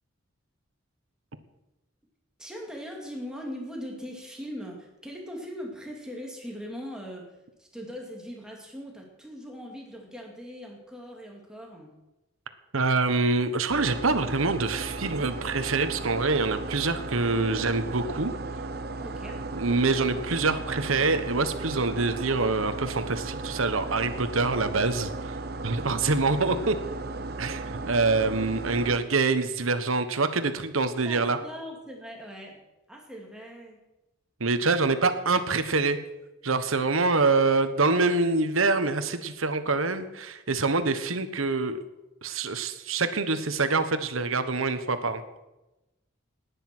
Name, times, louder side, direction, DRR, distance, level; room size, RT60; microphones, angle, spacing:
voice 1, 2.4-7.3 7.6-11.9 19.0-19.4 30.9-32.6 32.9-33.8, equal, 5° right, -1 dB, 2.6 m, -40 dB
voice 2, 12.7-18.3 19.5-25.3 25.6-26.8 27.4-31.4 34.4-36.0 36.4-41.8 42.2-45.2, right 3 dB, 85° right, 10 dB, 1.3 m, -25 dB
sound 1, 13.7-29.0, right 2 dB, 50° right, 0.9 m, -35 dB
18.5 x 9.9 x 6.2 m, 1.0 s
head